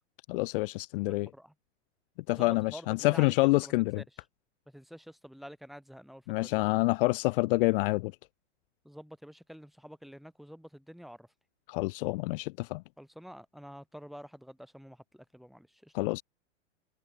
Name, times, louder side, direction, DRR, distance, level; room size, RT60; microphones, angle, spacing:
voice 1, 0.3-1.3 2.3-4.0 6.3-8.1 11.7-12.8 15.9-16.2, left 23 dB, 50° left, 0.5 m, -27 dB
voice 2, 1.1-1.5 2.3-4.0 4.7-6.6 8.8-11.3 13.0-16.1, equal, ahead, 6.5 m, -48 dB
hypercardioid pair, 130°, 35 cm